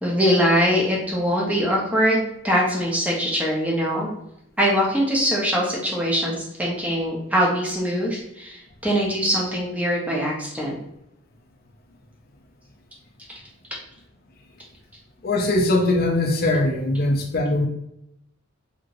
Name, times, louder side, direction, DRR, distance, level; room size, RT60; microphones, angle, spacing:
voice 1, 0.0-4.1 4.6-10.8, equal, 5° right, -4 dB, 0.7 m, -22 dB
voice 2, 15.2-17.7, left 2 dB, 50° left, 3 dB, 0.5 m, -21 dB
2.9 x 2.7 x 2.6 m, 0.78 s
head